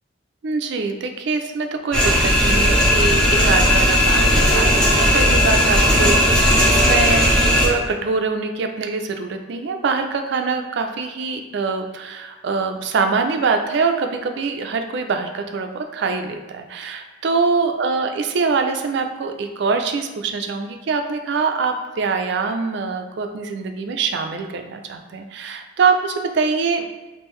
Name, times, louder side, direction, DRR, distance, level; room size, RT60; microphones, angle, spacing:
voice 1, 0.4-7.3 7.6-26.9, right 4 dB, 60° right, 6 dB, 0.4 m, -24 dB
sound 1, 1.9-7.7, equal, 5° left, 0.6 m, -16 dB
3.6 x 2.5 x 3.1 m, 1.2 s
head